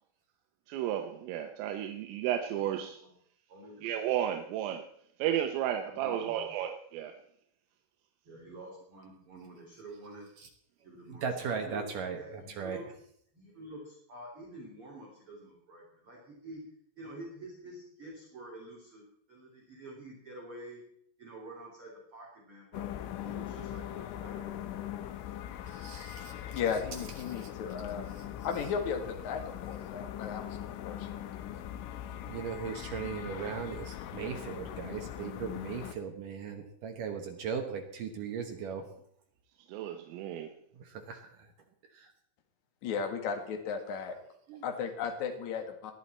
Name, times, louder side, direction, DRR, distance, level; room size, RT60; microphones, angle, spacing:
voice 1, 0.7-3.0 3.8-4.8 5.2-7.1 39.7-40.5, right 10 dB, 85° right, 3.5 m, -33 dB
voice 2, 2.2-2.6 3.0-3.1 3.5-3.9 5.8-6.5 8.2-10.3 10.8-11.9 12.2-12.8 13.3-16.6 17.0-19.0 19.3-20.8 21.2-24.6, right 1 dB, 30° right, 3.2 m, -48 dB
voice 3, 11.2-12.8 25.7-26.6 27.4-27.5 28.2-28.3 32.1-38.8 40.7-41.5 41.9-42.1 44.5-44.6, right 6 dB, 70° right, 2.0 m, -38 dB
sound 1, 22.7-35.9, left 11 dB, 80° left, 3.4 m, -41 dB
voice 4, 26.5-28.1 28.4-31.1 42.8-44.1 44.6-45.9, left 6 dB, 55° left, 2.2 m, -35 dB
20.0 x 11.5 x 4.2 m
omnidirectional pair, 5.7 m